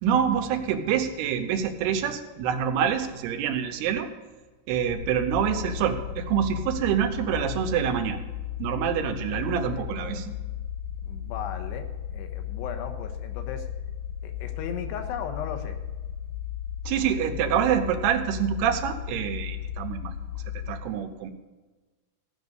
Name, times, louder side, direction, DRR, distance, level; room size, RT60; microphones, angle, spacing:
voice 1, 0.0-4.1 4.7-8.2 8.6-10.3 16.9-21.3, right 8 dB, 80° right, 6 dB, 2.9 m, -26 dB
sound 1, 4.9-20.7, left 9 dB, 70° left, 2.6 m, -35 dB
voice 2, 9.3-10.2 11.0-13.7 14.2-15.8, left 7 dB, 90° left, 6 dB, 3.2 m, -37 dB
16.0 x 5.3 x 8.1 m, 1.3 s
omnidirectional pair, 4.7 m